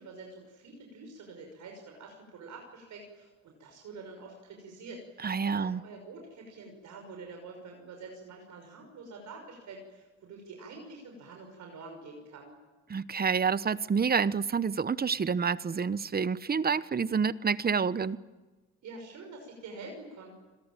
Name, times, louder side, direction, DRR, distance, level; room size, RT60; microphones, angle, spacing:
voice 1, 0.0-12.6 18.8-20.3, right 3 dB, 75° right, 2 dB, 6.1 m, -47 dB
voice 2, 5.2-5.8 12.9-18.2, right 6 dB, 30° right, 16 dB, 1.0 m, -28 dB
29.5 x 22.0 x 9.1 m, 1.2 s
cardioid pair, 90°, 30 cm